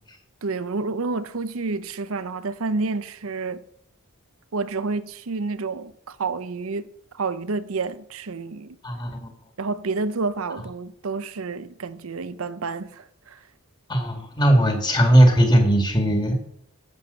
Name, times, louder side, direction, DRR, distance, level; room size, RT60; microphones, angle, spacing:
voice 1, 0.4-3.6 4.5-8.8 9.6-13.4, right 4 dB, 75° right, 0.6 m, -29 dB
voice 2, 8.8-9.3 13.9-16.3, right 1 dB, 20° left, 2.1 m, -18 dB
11.0 x 7.6 x 6.8 m
head